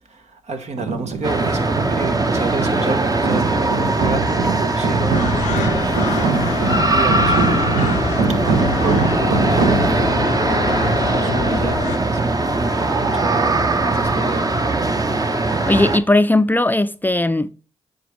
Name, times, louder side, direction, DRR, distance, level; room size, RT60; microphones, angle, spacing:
voice 1, 0.1-5.3 5.6-6.3 6.8-7.9 8.5-10.2 10.5-11.8 12.1-14.6, right 3 dB, 65° right, 1.2 m, -29 dB
sound 1, 0.7-10.2, right 4 dB, 85° right, 0.8 m, -23 dB
sound 2, 1.2-16.0, right 2 dB, 30° right, 0.9 m, -20 dB
sound 3, 5.1-12.0, left 9 dB, 75° left, 0.5 m, -27 dB
voice 2, 15.7-17.5, left 2 dB, 15° left, 0.4 m, -17 dB
9.0 x 3.9 x 3.1 m
supercardioid pair, 40°, 12 cm